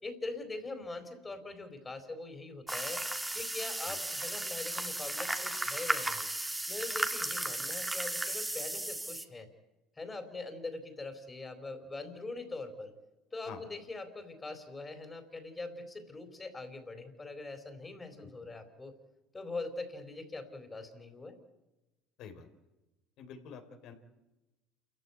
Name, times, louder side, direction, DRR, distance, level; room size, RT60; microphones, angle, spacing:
voice 1, 0.0-3.0 3.3-6.3 6.7-9.5 10.0-12.9 13.3-18.9 19.3-21.4, left 3 dB, 20° left, 5 dB, 4.4 m, -42 dB
sound 1, 2.7-9.2, right 1 dB, 10° right, 1.9 m, -35 dB
voice 2, 23.2-23.9, left 6 dB, 65° left, 7 dB, 4.0 m, -48 dB
28.5 x 14.5 x 9.6 m, 1.0 s
supercardioid pair, 85°, 0 cm